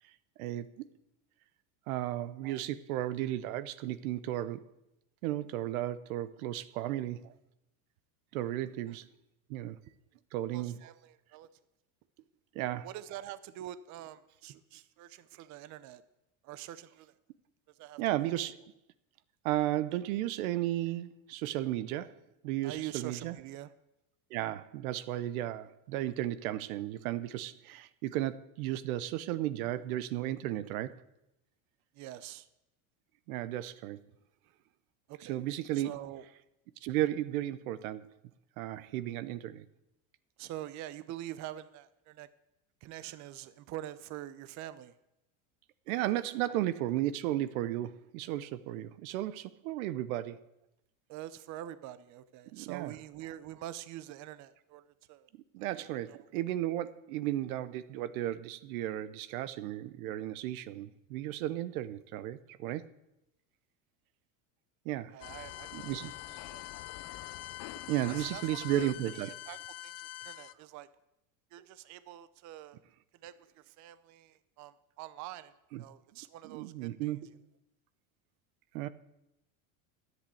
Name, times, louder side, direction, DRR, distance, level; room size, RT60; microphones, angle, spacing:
voice 1, 0.4-0.9 1.9-4.7 5.2-7.2 8.3-9.1 9.5-9.8 10.3-10.7 12.5-12.9 18.0-18.5 19.4-22.2 22.4-23.3 24.3-31.0 33.3-34.0 35.3-36.0 36.8-38.1 38.6-39.6 45.9-50.4 52.5-52.9 55.5-62.9 64.8-65.2 65.7-66.1 67.9-69.3 75.7-75.8 76.4-77.2 78.7-78.9, right 13 dB, 80° right, 0.8 m, -34 dB
voice 2, 10.5-11.5 12.8-16.0 16.4-17.1 17.7-18.3 22.6-23.7 31.9-32.5 35.1-35.4 35.7-36.3 40.4-42.3 42.8-45.0 51.1-55.3 56.1-56.3 65.1-66.6 67.4-67.5 68.1-70.9 71.5-72.8 73.2-75.5 75.8-77.3, right 13 dB, 45° right, 0.6 m, -45 dB
sound 1, 65.2-70.5, left 17 dB, 40° left, 0.4 m, -44 dB
10.5 x 8.1 x 8.4 m
supercardioid pair, 130°, 42 cm